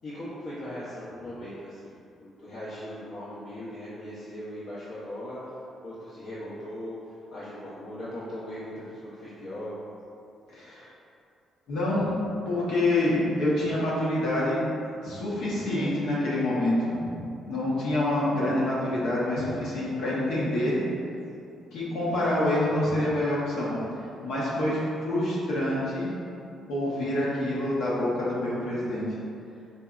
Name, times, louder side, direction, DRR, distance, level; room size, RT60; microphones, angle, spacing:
voice 1, 0.0-5.5 5.8-9.8, left 1 dB, 60° left, -11 dB, 0.7 m, -39 dB
voice 2, 10.5-10.9 11.7-12.1 12.5-14.7 15.0-20.8 21.7-23.8 24.2-26.1 26.7-29.0, left 1 dB, 85° left, -8 dB, 1.0 m, -27 dB
3.9 x 2.6 x 2.4 m, 2.6 s
cardioid pair, 90°, 0 cm